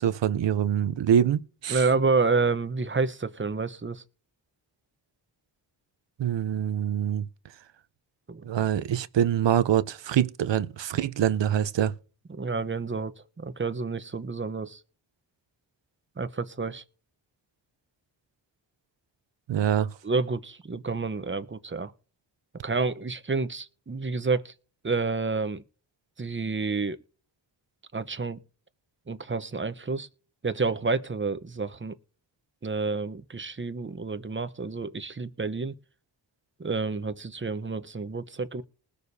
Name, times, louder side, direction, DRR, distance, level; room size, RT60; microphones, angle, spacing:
voice 1, 0.0-1.8 6.2-7.3 8.4-11.9 19.5-19.9, right 9 dB, 65° right, 0.7 m, -25 dB
voice 2, 1.7-4.0 8.3-8.4 12.4-14.8 16.2-16.8 20.0-21.9 22.6-24.5 24.8-25.6 26.2-27.0 27.9-28.4 29.1-30.1 30.4-31.9 32.6-35.7 36.6-38.6, right 4 dB, 25° right, 0.9 m, -29 dB
20.0 x 6.7 x 2.7 m
cardioid pair, 50°, 47 cm